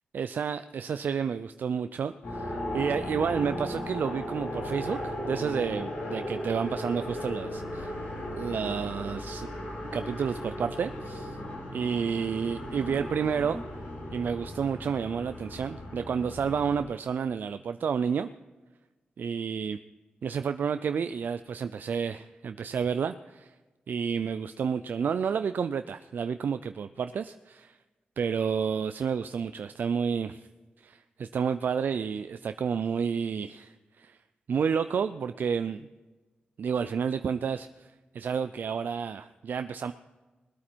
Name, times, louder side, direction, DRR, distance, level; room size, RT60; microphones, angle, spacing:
voice 1, 0.1-8.0 8.4-9.5 9.9-11.4 11.7-13.6 14.1-18.3 19.2-19.8 20.2-23.5 23.9-27.8 28.2-30.4 30.8-34.2 34.5-35.9 36.6-37.9 38.1-39.9, right 6 dB, 70° right, 10 dB, 0.4 m, -30 dB
sound 1, 2.2-16.8, left 1 dB, 90° left, 4.1 m, -36 dB
20.0 x 8.5 x 4.5 m, 1.2 s
wide cardioid pair, 90°, 3 cm